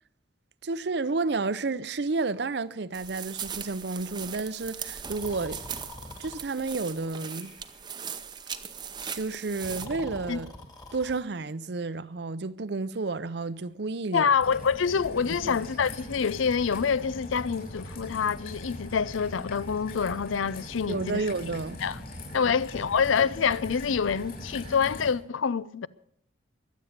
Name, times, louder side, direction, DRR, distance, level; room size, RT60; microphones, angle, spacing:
voice 1, 0.6-5.6 6.2-7.5 9.1-10.5 10.9-14.3 15.4-15.6 20.9-21.8, right 3 dB, 60° right, 0.6 m, -31 dB
sound 1, 2.9-9.9, right 7 dB, 20° right, 0.7 m, -39 dB
Breathing, 5.0-6.4 7.2-7.9 9.5-11.3, left 1 dB, 20° left, 2.0 m, -44 dB
voice 2, 14.1-21.2 21.8-22.0 22.3-25.9, left 6 dB, 90° left, 0.5 m, -26 dB
Raindrop / Trickle dribble, 14.4-25.1, left 1 dB, 45° left, 6.1 m, -41 dB
23.0 x 8.4 x 6.6 m
head